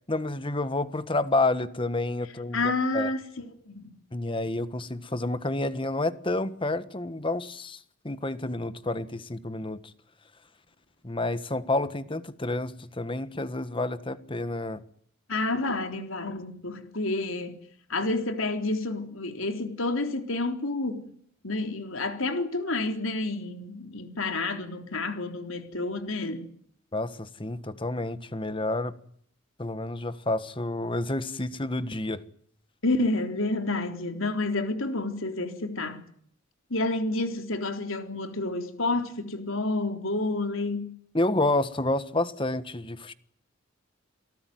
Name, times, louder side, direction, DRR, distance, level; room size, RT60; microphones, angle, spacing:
voice 1, 0.1-3.1 4.1-9.8 11.0-14.8 26.9-28.9 29.6-32.2 41.1-43.1, left 2 dB, 25° left, 1.4 m, -29 dB
voice 2, 2.5-3.9 15.3-17.6 17.9-21.1 21.4-26.5 32.8-36.0 36.7-40.9, left 2 dB, 75° left, 3.7 m, -29 dB
29.5 x 18.5 x 9.5 m
head